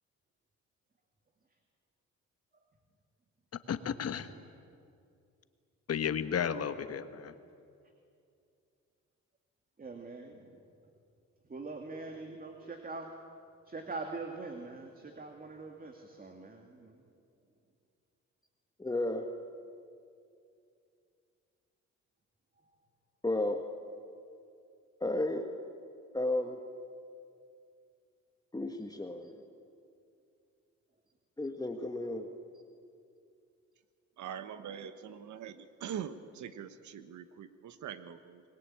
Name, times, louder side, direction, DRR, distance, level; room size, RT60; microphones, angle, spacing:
voice 1, 3.7-4.3 5.9-7.3, left 8 dB, 55° left, 10 dB, 1.4 m, -33 dB
voice 2, 9.8-10.6 11.5-13.1 13.7-17.0, right 3 dB, 30° right, 3 dB, 2.3 m, -43 dB
voice 3, 18.8-19.2 23.2-23.6 25.0-25.5 26.1-26.6 28.5-29.3 31.4-32.3, left 2 dB, 10° left, 4 dB, 1.6 m, -33 dB
voice 4, 34.2-38.4, right 8 dB, 70° right, 11 dB, 1.3 m, -43 dB
26.0 x 21.0 x 8.8 m, 2.5 s
cardioid pair, 90°, 30 cm